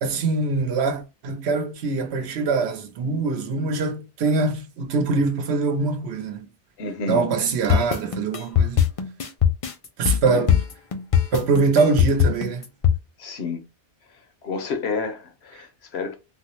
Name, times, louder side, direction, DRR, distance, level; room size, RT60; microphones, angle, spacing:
voice 1, 0.0-6.4 7.1-8.8 10.0-10.6 11.3-12.6, right 4 dB, 85° right, 0.9 m, -23 dB
voice 2, 6.8-7.3 10.3-10.5 13.2-13.6 14.4-16.2, left 4 dB, 75° left, 1.0 m, -29 dB
stowaway titles drum loop, 7.7-13.0, left 8 dB, 50° left, 0.4 m, -20 dB
3.5 x 2.1 x 2.9 m
omnidirectional pair, 1.1 m